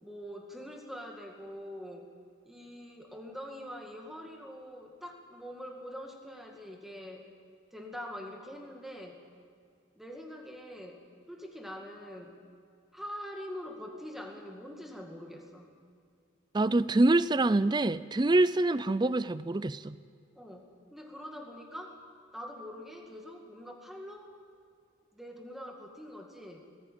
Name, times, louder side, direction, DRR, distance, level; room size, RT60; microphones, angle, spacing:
voice 1, 0.0-2.1 2.4-7.3 7.7-9.2 10.0-12.4 12.9-15.7 20.4-22.0 22.3-24.3 25.1-26.7, equal, ahead, 1 dB, 2.2 m, -44 dB
voice 2, 16.5-20.0, right 2 dB, 20° right, 16 dB, 0.4 m, -25 dB
19.5 x 15.5 x 9.3 m, 2.3 s
head